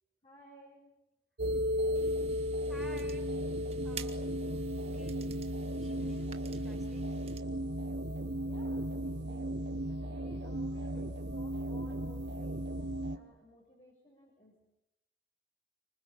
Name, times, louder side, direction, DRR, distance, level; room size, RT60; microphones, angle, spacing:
voice 1, 0.2-0.8 8.4-14.7, equal, 35° left, -3 dB, 7.0 m, -57 dB
sound 1, 1.4-13.2, equal, 90° right, 1.8 m, -35 dB
sound 2, 1.9-7.4, right 7 dB, 35° right, 1.7 m, -51 dB
voice 2, 2.7-3.3 3.8-4.4 4.9-5.2 5.8-7.1 10.8-11.1, right 1 dB, ahead, 1 dB, 5.3 m, -53 dB
26.0 x 25.0 x 9.0 m, 0.89 s
head